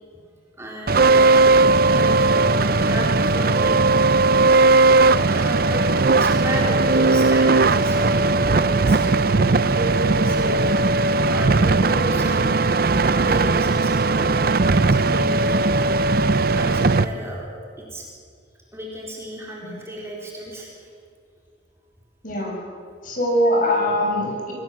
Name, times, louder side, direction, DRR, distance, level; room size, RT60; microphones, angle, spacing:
voice 1, 0.6-4.0 5.3-5.8 6.2-9.1 9.5-12.6 13.1-14.5 14.9-15.6 16.5-17.4 17.9-18.1 18.7-20.9, equal, 15° right, -3 dB, 4.1 m, -33 dB
sound 1, 0.9-17.0, right 3 dB, 50° right, 0.6 m, -18 dB
voice 2, 22.2-22.6 23.0-24.5, equal, 45° left, -1 dB, 8.0 m, -22 dB
25.5 x 18.5 x 7.7 m, 2.3 s
head